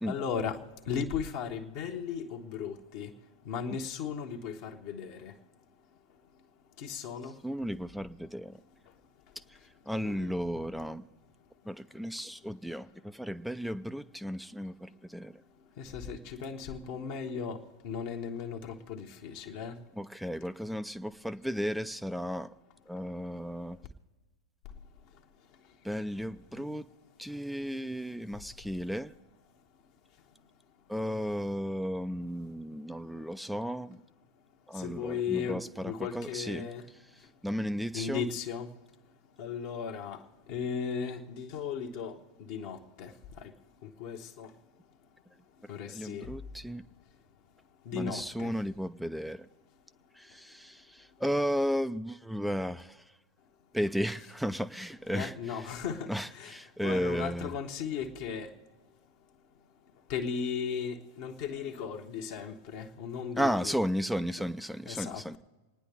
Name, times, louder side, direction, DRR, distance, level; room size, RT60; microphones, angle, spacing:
voice 1, 0.1-0.6 0.9-3.1 3.5-5.3 6.8-7.3 10.0-10.3 15.8-17.6 17.8-19.7 34.8-36.8 37.9-38.7 39.4-40.2 40.5-42.2 42.5-43.1 44.0-44.5 45.7-46.3 47.9-48.5 55.1-56.5 56.8-58.5 60.1-63.7 64.4-64.5 64.9-65.4, left 6 dB, 45° left, 1.1 m, -36 dB
voice 2, 7.4-8.6 9.9-11.0 11.7-15.3 20.0-22.5 22.9-23.8 25.8-26.9 27.2-29.1 30.9-34.0 34.7-36.7 37.4-38.3 45.9-46.8 47.9-49.5 50.2-53.0 53.7-55.3 56.1-57.5 63.3-65.4, equal, ahead, 0.5 m, -34 dB
27.5 x 9.9 x 3.5 m
figure-of-eight pair, 90°, 0 cm